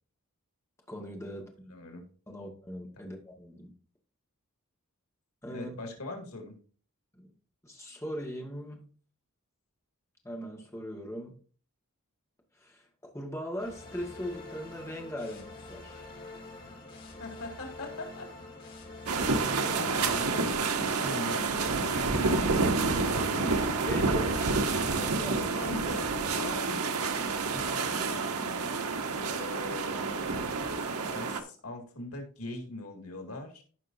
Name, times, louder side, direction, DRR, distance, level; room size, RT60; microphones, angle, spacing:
voice 1, 0.9-1.7 2.3-3.7 5.4-5.8 7.1-7.3 7.6-8.9 10.2-11.4 12.6-12.9 13.1-16.0 23.9-24.4 24.9-25.6, equal, 15° left, 0 dB, 1.9 m, -39 dB
voice 2, 1.7-2.0 3.0-3.1 5.5-6.5 17.2-18.3 19.1-19.4 19.8-20.3 20.8-22.6 23.2-23.8 25.5-26.8 27.5-28.3 29.3-30.2 30.8-33.6, left 2 dB, 90° left, 3 dB, 2.2 m, -41 dB
sound 1, 13.6-20.4, left 3 dB, 40° left, 3.2 m, -46 dB
sound 2, 19.1-31.4, right 4 dB, 85° right, 1.0 m, -29 dB
14.5 x 5.4 x 2.7 m, 0.41 s
head